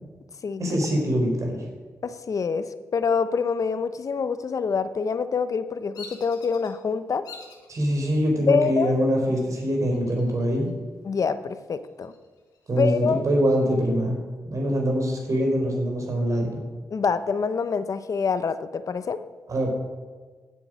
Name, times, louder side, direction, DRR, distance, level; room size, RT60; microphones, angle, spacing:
voice 1, 0.6-1.6 7.7-10.7 12.7-14.2 14.5-16.5 19.5-19.7, equal, 55° right, 1 dB, 3.8 m, -23 dB
voice 2, 2.0-7.3 8.5-8.9 11.0-12.1 12.8-13.2 16.9-19.2, left 5 dB, 55° left, 12 dB, 0.8 m, -26 dB
Bird vocalization bird call bird song, 5.9-6.7 7.2-7.7 8.2-8.8 9.9-10.7 11.0-11.1 11.6-13.0, left 4 dB, 80° left, 1.7 m, -45 dB
10.0 x 8.4 x 6.2 m, 1.4 s
supercardioid pair, 50°, 7 cm